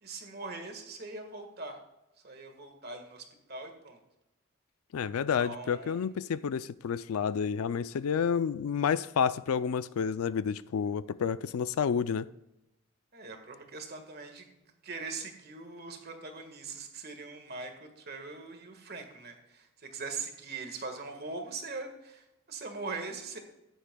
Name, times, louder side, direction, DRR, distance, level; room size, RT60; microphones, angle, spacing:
voice 1, 0.0-1.8 2.2-4.0 5.3-6.1 13.1-23.4, right 3 dB, 45° right, 1.6 m, -41 dB
voice 2, 4.9-12.3, left 7 dB, 85° left, 0.4 m, -30 dB
14.5 x 10.0 x 2.3 m
head